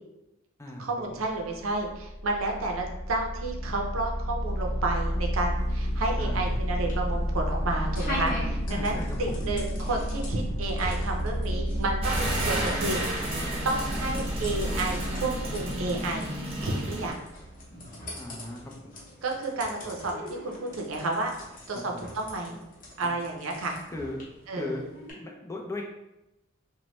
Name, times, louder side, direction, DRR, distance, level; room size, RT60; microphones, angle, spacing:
voice 1, 0.8-13.4 13.6-16.3 16.6-17.2 19.2-21.3 21.7-22.6 23.0-23.8 24.5-24.8, right 2 dB, 85° right, 1 dB, 0.5 m, -31 dB
sound 1, 1.4-18.7, equal, 75° left, 0.9 m, -32 dB
sound 2, 5.6-25.1, left 1 dB, 45° left, 0.8 m, -43 dB
voice 2, 6.2-6.5 8.7-9.4 18.2-18.6 21.9-22.0 23.9-24.2 24.6-24.8 25.1-25.8, left 2 dB, 15° left, 0 dB, 0.4 m, -37 dB
sound 3, 12.0-17.1, right 1 dB, 30° right, 0.7 m, -32 dB
3.0 x 2.1 x 3.0 m, 0.93 s
head